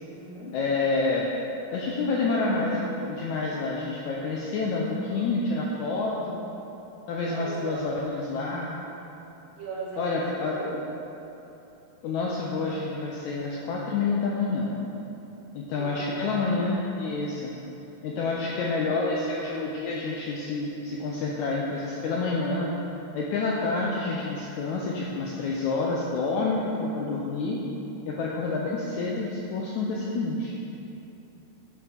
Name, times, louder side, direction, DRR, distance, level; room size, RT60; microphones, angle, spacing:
voice 1, 0.0-0.6 7.2-7.8 9.5-10.8 15.7-16.6 18.2-18.7, right 3 dB, 55° right, -7 dB, 1.0 m, -39 dB
voice 2, 0.5-1.3 1.7-6.4 7.1-8.8 10.0-10.6 12.0-14.8 15.5-17.5 18.0-22.7 23.1-27.6 28.1-30.5, left 3 dB, 85° left, -3 dB, 1.7 m, -28 dB
8.6 x 4.3 x 4.2 m, 3.0 s
omnidirectional pair, 4.0 m